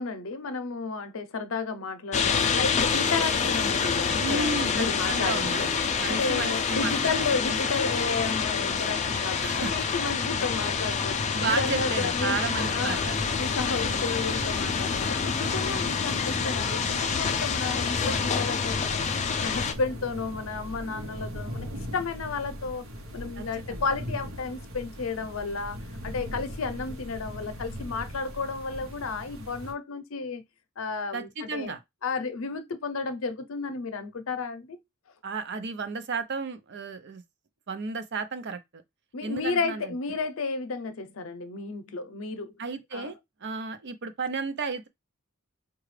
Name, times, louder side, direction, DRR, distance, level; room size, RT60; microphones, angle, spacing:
voice 1, 0.0-5.7 6.1-13.1 13.4-19.1 19.4-21.7 21.9-22.8 23.1-25.8 26.0-30.4 30.8-31.7 32.0-34.8 39.1-42.6 42.9-43.1, left 4 dB, 75° left, 0.6 m, -32 dB
sound 1, 2.1-19.7, left 6 dB, 35° left, 0.4 m, -27 dB
voice 2, 4.2-7.3 9.4-9.7 11.3-13.2 13.7-14.0 23.4-23.8 31.1-31.8 35.2-37.2 37.7-38.8 39.2-40.0 42.6-43.2 43.4-44.9, right 4 dB, 55° right, 0.6 m, -33 dB
sound 2, 12.6-29.7, equal, 75° right, 0.9 m, -40 dB
4.8 x 2.3 x 3.2 m
head